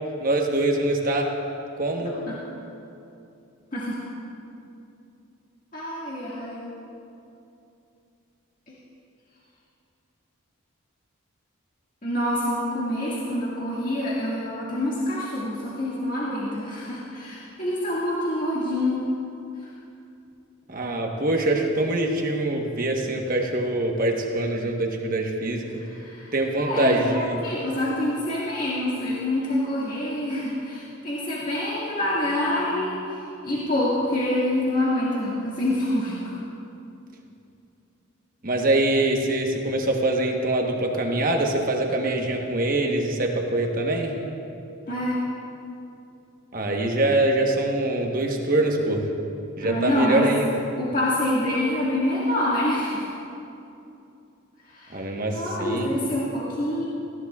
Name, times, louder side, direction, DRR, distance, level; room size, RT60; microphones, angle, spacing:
voice 1, 0.2-1.3 1.8-2.2 20.7-25.7 26.3-27.4 38.4-44.1 46.5-49.1 49.6-50.5 54.9-55.9, right 2 dB, 40° right, 1 dB, 1.1 m, -24 dB
voice 2, 5.7-6.7 8.7-8.8 12.0-19.1 19.6-19.7 25.7-36.3 44.9-45.2 49.6-50.3 50.8-53.1 54.6-55.0 55.3-56.8, left 1 dB, 40° left, -8 dB, 1.9 m, -26 dB
18.5 x 14.5 x 2.4 m, 2.7 s
head